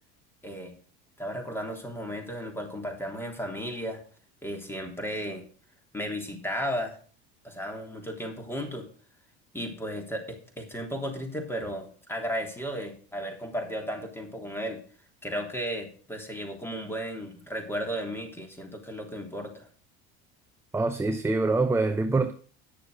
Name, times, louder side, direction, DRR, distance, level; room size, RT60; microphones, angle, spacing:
voice 1, 0.4-0.8 1.2-4.0 4.4-5.4 5.9-7.0 7.4-8.8 9.5-14.8 15.2-19.7, equal, 10° left, 3.3 m, -34 dB
voice 2, 20.7-22.3, right 3 dB, 10° right, 0.8 m, -25 dB
10.0 x 6.7 x 6.5 m
supercardioid pair, 110°, 30 cm